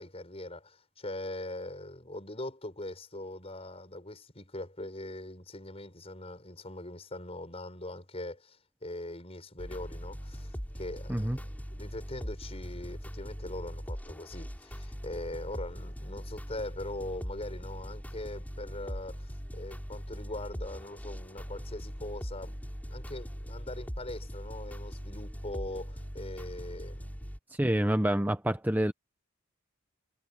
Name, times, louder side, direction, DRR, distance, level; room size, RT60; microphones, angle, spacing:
voice 1, 0.0-22.6 22.9-27.1, left 1 dB, 30° left, 7.2 m, -41 dB
sound 1, 9.6-27.4, equal, 10° left, 7.1 m, -41 dB
voice 2, 27.5-28.9, right 1 dB, 10° right, 0.8 m, -27 dB
head